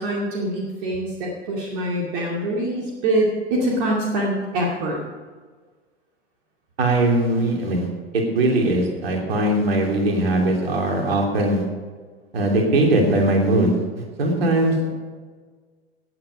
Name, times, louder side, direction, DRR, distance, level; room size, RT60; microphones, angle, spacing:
voice 1, 0.0-5.0, right 1 dB, 50° right, -2 dB, 2.4 m, -24 dB
voice 2, 6.8-7.9 8.1-11.6 12.3-14.9, right 1 dB, 65° right, 1 dB, 3.0 m, -20 dB
17.0 x 9.2 x 5.2 m, 1.5 s
figure-of-eight pair, 85°, 32 cm